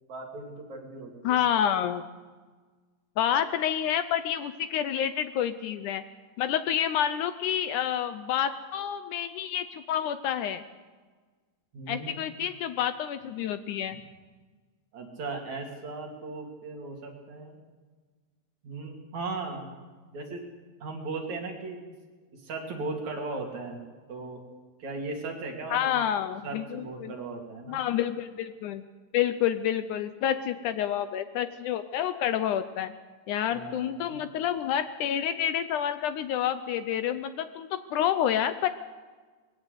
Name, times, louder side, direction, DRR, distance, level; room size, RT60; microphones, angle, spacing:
voice 1, 0.1-1.4 11.7-12.2 14.9-17.7 18.6-19.7 20.1-20.4 20.8-21.8 22.3-23.8 24.1-24.4 24.8-26.0 26.4-27.8 33.5-34.2, right 3 dB, 55° right, 1 dB, 4.1 m, -37 dB
voice 2, 1.2-2.0 3.2-6.0 6.4-10.6 11.9-14.0 25.7-27.1 27.7-28.8 29.1-32.9 33.3-38.7, left 10 dB, 75° left, 11 dB, 2.0 m, -28 dB
21.0 x 16.0 x 8.1 m, 1.4 s
omnidirectional pair, 4.0 m